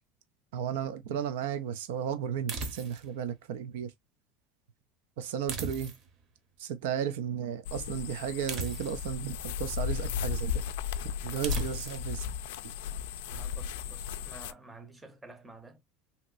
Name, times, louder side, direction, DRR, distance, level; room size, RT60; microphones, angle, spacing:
voice 1, 0.5-3.9 5.2-5.9 6.6-10.7 11.2-12.3, right 8 dB, 85° right, 0.5 m, -34 dB
sound 1, 2.5-3.2 5.5-6.2 8.5-9.2 11.4-12.1, right 4 dB, 45° right, 0.9 m, -37 dB
sound 2, 7.6-14.5, left 8 dB, 90° left, 0.3 m, -35 dB
voice 2, 13.3-15.8, right 3 dB, 10° right, 0.7 m, -50 dB
3.0 x 2.8 x 2.5 m
supercardioid pair, 130°, 0 cm